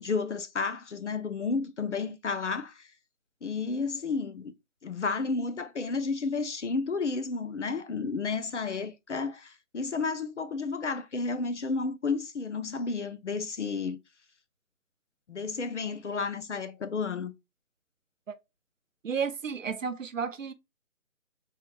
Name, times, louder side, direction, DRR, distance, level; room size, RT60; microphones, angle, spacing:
voice 1, 0.0-2.9 3.4-4.5 4.8-14.0 15.3-17.3, left 4 dB, 55° left, 0.5 m, -32 dB
voice 2, 19.0-20.5, right 6 dB, 65° right, 0.5 m, -32 dB
3.6 x 2.5 x 3.2 m
figure-of-eight pair, 175°, 43 cm